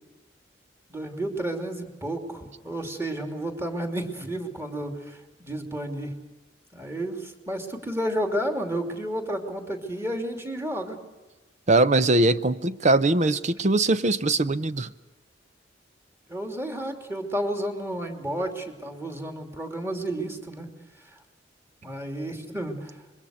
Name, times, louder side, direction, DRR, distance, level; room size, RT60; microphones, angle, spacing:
voice 1, 0.9-6.2 6.7-11.0 16.3-20.7 21.1-21.2 21.8-23.0, right 1 dB, 15° right, 4 dB, 3.0 m, -31 dB
voice 2, 11.7-14.9, right 2 dB, 40° right, 14 dB, 0.8 m, -21 dB
26.0 x 22.5 x 6.5 m, 1.2 s
head